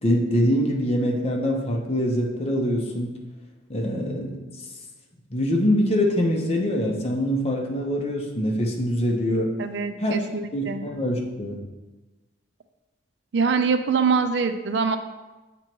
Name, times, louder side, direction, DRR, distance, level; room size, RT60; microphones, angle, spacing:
voice 1, 0.0-3.1 3.7-4.4 5.3-9.5 10.0-10.1 10.5-11.6, equal, 35° left, 0 dB, 0.8 m, -24 dB
voice 2, 9.6-10.8 13.3-15.0, right 5 dB, 65° right, 9 dB, 0.4 m, -24 dB
7.8 x 3.0 x 4.5 m, 1.1 s
head